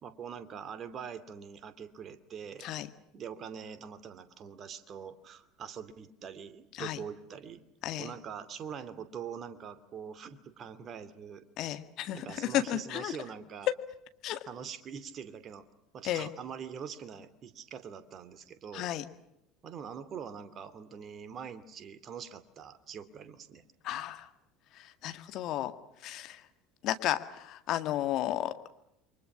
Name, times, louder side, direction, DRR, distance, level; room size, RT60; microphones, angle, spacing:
voice 1, 0.0-2.7 3.1-7.6 8.0-11.4 12.1-13.7 14.5-15.7 15.9-18.9 19.6-23.6, right 7 dB, 40° right, 13 dB, 2.6 m, -44 dB
voice 2, 11.6-13.1 14.2-14.4 16.0-16.3 18.7-19.0 23.8-24.3 24.8-25.7 26.0-26.4 26.8-28.5, left 13 dB, 50° left, 10 dB, 1.9 m, -33 dB
29.5 x 24.0 x 6.2 m, 0.80 s
figure-of-eight pair, 70°, 0 cm